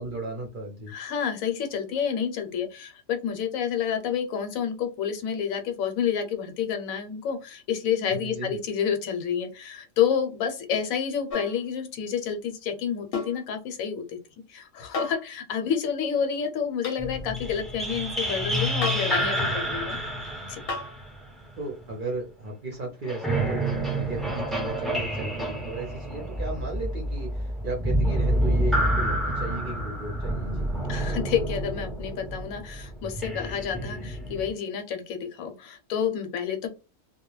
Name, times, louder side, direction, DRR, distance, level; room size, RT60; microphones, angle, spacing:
voice 1, 0.0-0.9 8.2-8.6 21.6-30.7, right 2 dB, 50° right, 0 dB, 0.6 m, -35 dB
voice 2, 0.9-14.2 14.5-20.0 20.5-20.6 30.9-36.7, left 7 dB, 80° left, 6 dB, 1.0 m, -29 dB
sound 1, 11.3-11.6 13.1-13.4 14.9-15.3 16.8-17.0 18.8-19.2 20.7-21.0 22.7-22.8, left 3 dB, 55° left, 0.7 m, -33 dB
sound 2, 17.0-22.0 23.0-34.5, right 1 dB, ahead, 0.3 m, -28 dB
2.2 x 2.1 x 3.0 m, 0.30 s
omnidirectional pair, 1.4 m